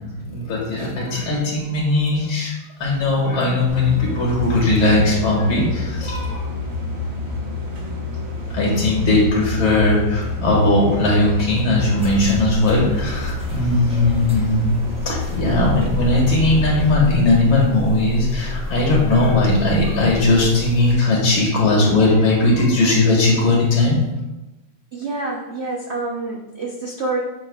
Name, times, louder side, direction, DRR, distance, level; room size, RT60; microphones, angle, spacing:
voice 1, 0.0-2.5 2.8-6.5 8.5-14.7 15.1-24.0, left 2 dB, 75° left, -3 dB, 2.9 m, -18 dB
sound 1, 3.7-16.9, left 3 dB, 40° right, 1.0 m, -28 dB
sound 2, 12.0-20.9, left 1 dB, 5° right, 0.6 m, -30 dB
voice 2, 24.9-27.2, right 3 dB, 65° right, -1 dB, 0.6 m, -27 dB
9.1 x 6.0 x 2.4 m, 1.0 s
omnidirectional pair, 2.3 m